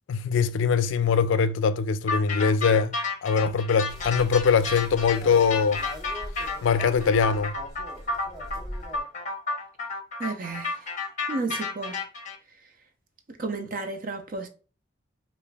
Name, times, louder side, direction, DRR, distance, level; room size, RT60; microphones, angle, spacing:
voice 1, 0.1-3.0 3.2-5.8 6.6-7.6, left 6 dB, 75° left, 0.3 m, -22 dB
sound 1, 2.1-12.3, left 3 dB, 40° left, 0.7 m, -31 dB
sound 2, 3.9-9.0, equal, 15° right, 1.2 m, -41 dB
voice 2, 10.2-10.8 11.3-12.0 13.3-14.5, right 3 dB, 45° right, 0.5 m, -32 dB
4.9 x 2.5 x 2.2 m
head